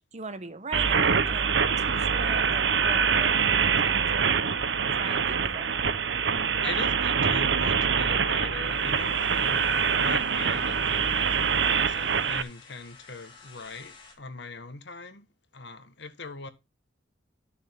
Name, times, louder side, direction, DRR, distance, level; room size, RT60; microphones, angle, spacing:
voice 1, 0.1-4.4 4.9-5.7, right 3 dB, 40° right, 1.3 m, -40 dB
sound 1, 0.7-12.4, right 6 dB, 75° right, 0.9 m, -25 dB
voice 2, 6.6-15.3 15.5-16.5, left 4 dB, 70° left, 1.5 m, -40 dB
sound 2, 8.2-14.2, left 4 dB, 30° left, 3.5 m, -53 dB
13.0 x 6.6 x 3.6 m
head